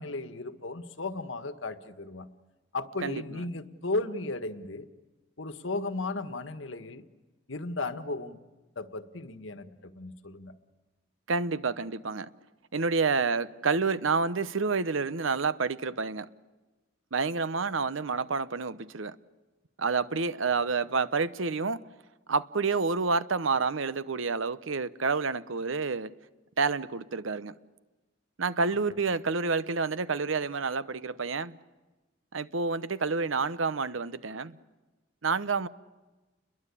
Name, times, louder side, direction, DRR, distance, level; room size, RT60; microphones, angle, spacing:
voice 1, 0.0-2.3 2.7-4.9 5.4-7.1 7.5-8.4 8.7-10.5 28.7-29.0, left 2 dB, 75° left, 1.5 m, -35 dB
voice 2, 3.0-3.4 11.3-12.3 12.7-16.3 17.1-19.1 19.8-21.8 22.3-26.1 26.6-27.5 28.4-31.6 32.3-34.6 35.2-35.7, right 4 dB, 80° right, 0.9 m, -29 dB
30.0 x 22.5 x 8.5 m
head